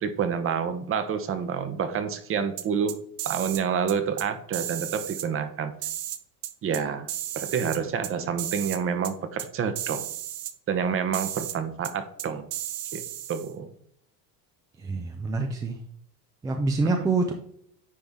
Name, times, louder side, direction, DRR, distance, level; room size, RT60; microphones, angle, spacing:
voice 1, 0.0-2.9 3.2-5.7 6.6-7.1 7.3-10.1 10.7-12.5 12.9-13.0 13.3-13.7 17.0-17.1, right 7 dB, 30° right, 11 dB, 0.8 m, -28 dB
sound 1, 2.6-3.6 3.9-4.2 4.5-5.3 5.8-6.8 7.1-8.1 8.4-8.8 9.0-9.1 9.4-9.5 9.7-10.5 11.1-11.6 11.8-11.9 12.2-13.5, right 13 dB, 75° right, 0.8 m, -34 dB
voice 2, 14.8-15.8 16.4-17.3, right 3 dB, 10° right, 4 dB, 0.3 m, -26 dB
9.6 x 3.4 x 3.6 m, 0.67 s
supercardioid pair, 125°, 45 cm